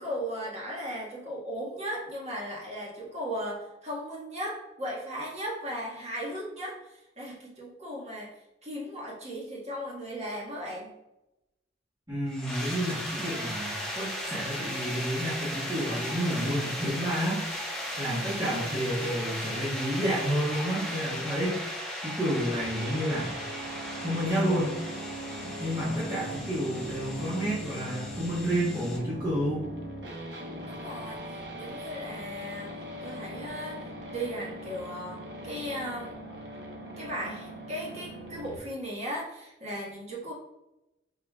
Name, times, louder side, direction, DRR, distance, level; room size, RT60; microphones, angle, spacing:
voice 1, 0.0-10.9 30.6-36.2 37.0-40.3, equal, 40° right, -4 dB, 1.6 m, -37 dB
voice 2, 12.1-17.5 18.0-21.6 22.0-23.4 24.0-24.7 25.4-29.7, equal, 20° right, -8 dB, 1.1 m, -30 dB
sound 1, 12.3-29.0, left 1 dB, 5° left, 1.2 m, -37 dB
sound 2, 22.6-38.6, equal, 70° right, 0.9 m, -40 dB
5.3 x 3.8 x 2.3 m, 0.92 s
head